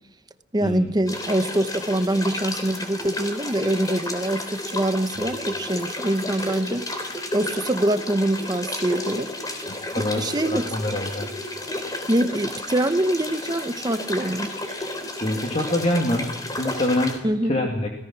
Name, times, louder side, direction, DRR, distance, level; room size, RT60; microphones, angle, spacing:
voice 1, 0.5-9.7 9.9-10.7 12.1-14.5 17.2-17.6, right 1 dB, 20° right, 10 dB, 0.9 m, -24 dB
sound 1, 1.1-17.2, left 2 dB, 20° left, 3.4 m, -32 dB
voice 2, 9.9-11.3 14.6-16.3 16.6-17.2 17.4-17.9, left 1 dB, 40° left, 0 dB, 2.4 m, -25 dB
25.5 x 17.5 x 6.1 m, 0.95 s
head